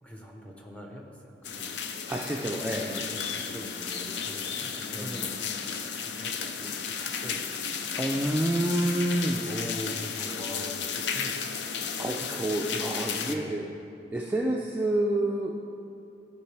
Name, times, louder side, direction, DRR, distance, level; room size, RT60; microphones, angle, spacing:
voice 1, 0.0-2.0 2.7-7.4 9.4-11.7 13.2-13.7, equal, 5° left, 0 dB, 0.8 m, -42 dB
sound 1, 1.4-13.3, left 6 dB, 80° left, 0.5 m, -34 dB
voice 2, 2.1-3.0 4.9-5.3 7.9-9.7 12.0-13.7 14.1-15.7, right 1 dB, 10° right, -2 dB, 0.4 m, -28 dB
13.5 x 4.6 x 3.3 m, 2.5 s
head